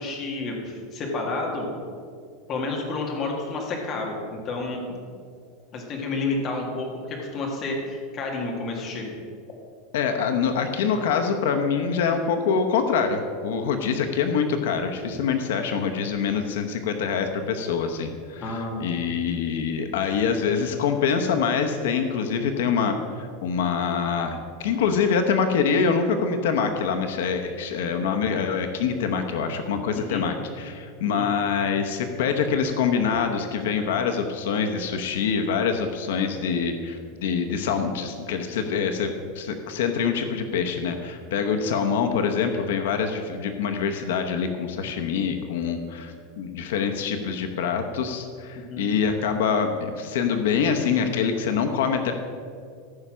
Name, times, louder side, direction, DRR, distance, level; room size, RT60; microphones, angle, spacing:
voice 1, 0.0-1.7 2.5-4.8 5.7-9.1 18.4-18.9 29.9-30.2 31.2-31.3 48.5-48.8, left 3 dB, 25° left, 0 dB, 1.7 m, -30 dB
voice 2, 9.9-52.1, left 6 dB, 75° left, 6 dB, 0.9 m, -25 dB
14.5 x 5.6 x 6.2 m, 2.3 s
supercardioid pair, 180°, 0 cm